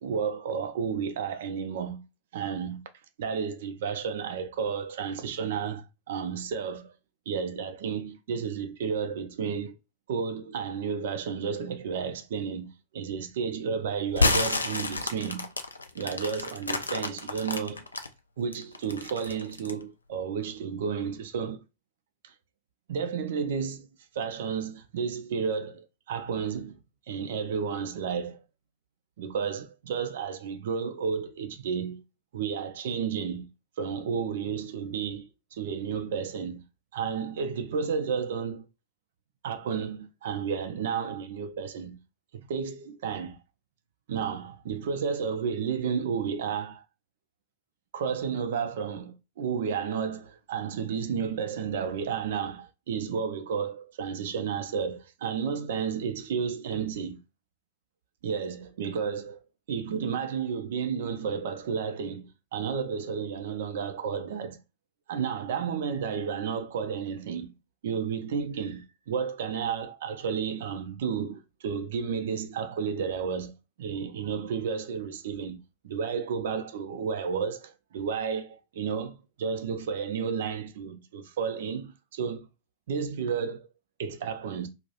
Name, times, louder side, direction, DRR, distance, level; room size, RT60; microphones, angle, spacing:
voice 1, 0.0-2.0 2.3-2.8 3.2-6.9 7.3-9.8 10.1-15.5 15.9-17.8 18.4-21.6 22.2-22.3 22.9-23.9 24.1-26.8 27.1-28.4 29.2-32.0 32.3-33.5 33.8-36.6 36.9-38.7 39.4-42.0 42.5-43.4 44.1-46.8 47.9-57.2 58.2-59.4 59.7-64.6 65.1-67.5 67.8-75.6 75.8-82.5 82.9-83.7 84.0-84.7, right 6 dB, 55° right, 0.4 m, -32 dB
sound 1, 14.1-18.1 18.5-19.8, left 3 dB, 80° left, 0.3 m, -29 dB
2.2 x 2.0 x 2.8 m
figure-of-eight pair, 90°, 0 cm